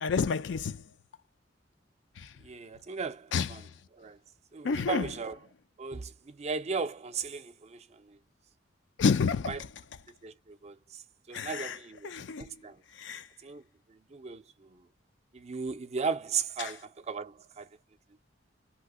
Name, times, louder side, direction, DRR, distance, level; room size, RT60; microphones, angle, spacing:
voice 1, 0.0-0.8 2.2-2.3 3.3-3.5 4.6-5.1 9.0-9.6 11.3-11.8 12.0-12.5 13.0-13.3 16.6-16.7, left 5 dB, 75° left, 0.4 m, -29 dB
voice 2, 2.4-3.6 3.9-4.2 4.5-5.4 5.8-8.2 9.5-9.6 10.2-11.0 11.3-12.8 13.4-13.6 13.9-14.8 15.3-17.7, right 5 dB, 35° right, 0.5 m, -36 dB
2.8 x 2.2 x 3.5 m
head